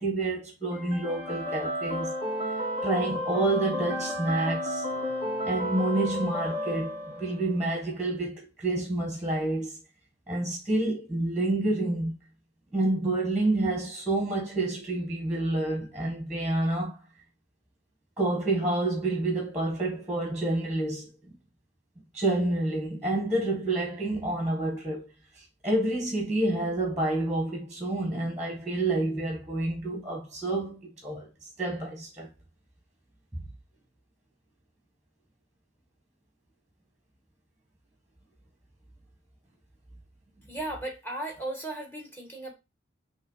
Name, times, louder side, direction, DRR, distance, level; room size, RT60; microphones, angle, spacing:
voice 1, 0.0-2.1 2.8-4.8 5.4-9.8 10.3-12.1 12.7-17.0 18.2-21.3 22.1-25.1 25.4-31.3 31.6-32.3 33.3-33.4, right 2 dB, 5° right, 1.4 m, -28 dB
sound 1, 0.7-7.7, equal, 35° left, 3.1 m, -32 dB
voice 2, 40.5-42.5, right 2 dB, 10° left, 1.5 m, -36 dB
5.5 x 3.1 x 5.6 m
head